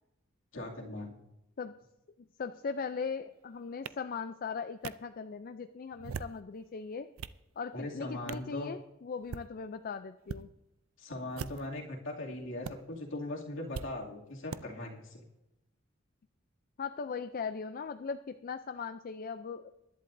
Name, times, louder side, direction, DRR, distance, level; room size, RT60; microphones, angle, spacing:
voice 1, 0.5-1.2 7.7-8.7 11.0-15.2, left 2 dB, 65° left, -1 dB, 2.4 m, -40 dB
voice 2, 2.2-7.1 7.6-10.5 16.8-19.7, left 5 dB, 45° left, 9 dB, 0.4 m, -39 dB
sound 1, 3.9-4.0 4.8-4.9 5.9-6.4 6.9-7.4 8.3-8.5 9.2-9.5 10.2-10.4 11.3-11.8 12.6-12.7 13.7-13.9 14.5-14.6, right 6 dB, 80° right, 0.5 m, -40 dB
20.5 x 11.0 x 2.6 m, 0.93 s
head